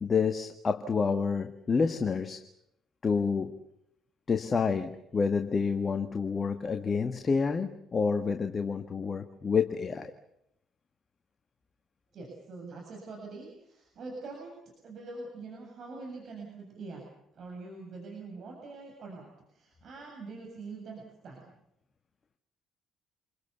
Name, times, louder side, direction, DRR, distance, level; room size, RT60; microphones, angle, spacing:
voice 1, 0.0-2.4 3.0-3.5 4.3-10.1, left 5 dB, 35° left, 7 dB, 1.7 m, -28 dB
voice 2, 12.1-14.6 14.8-17.1 17.3-21.5, right 3 dB, 55° right, 0 dB, 7.8 m, -44 dB
28.0 x 23.5 x 7.1 m, 0.79 s
hypercardioid pair, 50°, 0 cm